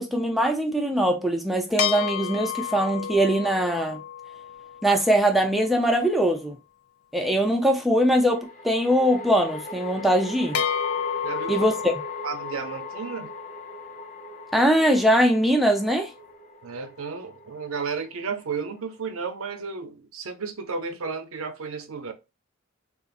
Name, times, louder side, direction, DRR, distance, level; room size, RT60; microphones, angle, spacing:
voice 1, 0.0-4.0 4.8-6.6 7.1-10.6 11.5-11.9 14.5-16.1, equal, ahead, 0.4 m, -22 dB
sound 1, 1.8-5.5 10.5-14.9, left 8 dB, 80° left, 0.4 m, -32 dB
sound 2, 5.3-5.4 8.2-19.6, left 1 dB, 35° left, 0.6 m, -41 dB
voice 2, 11.2-11.6 12.2-13.3 16.6-22.1, right 5 dB, 80° right, 0.6 m, -33 dB
3.8 x 2.4 x 2.4 m
head